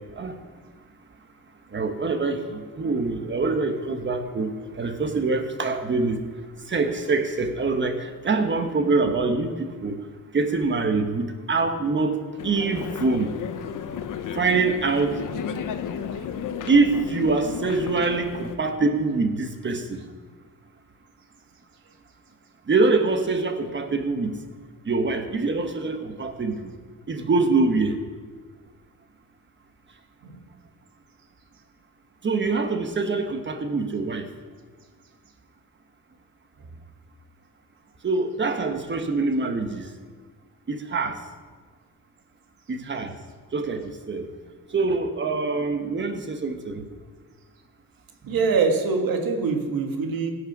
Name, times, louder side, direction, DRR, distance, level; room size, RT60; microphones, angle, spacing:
voice 1, 1.7-6.2 6.7-10.0 10.3-13.3 14.3-15.2 16.7-20.0 22.7-24.4 24.8-26.7 27.1-28.0 32.2-34.3 38.0-39.9 40.7-41.2 42.7-43.1 43.5-44.3 44.7-46.8, right 3 dB, 35° right, 7 dB, 1.2 m, -24 dB
sound 1, 12.4-18.6, left 8 dB, 60° left, 0.8 m, -33 dB
voice 2, 48.2-50.3, right 4 dB, 75° right, 3 dB, 1.7 m, -24 dB
16.0 x 6.5 x 6.1 m, 1.5 s
cardioid pair, 120°, 35 cm